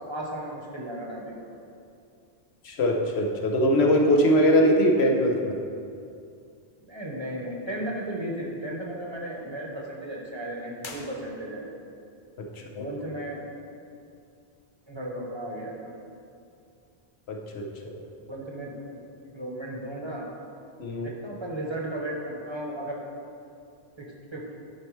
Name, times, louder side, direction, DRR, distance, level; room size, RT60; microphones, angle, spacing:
voice 1, 0.1-1.3 6.8-11.7 12.7-13.4 14.9-15.9 18.2-20.3 21.0-23.0 24.0-24.4, right 1 dB, 30° right, -3 dB, 0.9 m, -35 dB
voice 2, 2.6-5.6 12.6-12.8 17.3-18.0 20.8-21.1, equal, 75° left, 0 dB, 1.1 m, -22 dB
sound 1, 10.8-11.8, left 4 dB, 55° left, 0.8 m, -44 dB
11.5 x 4.4 x 3.2 m, 2.5 s
omnidirectional pair, 1.1 m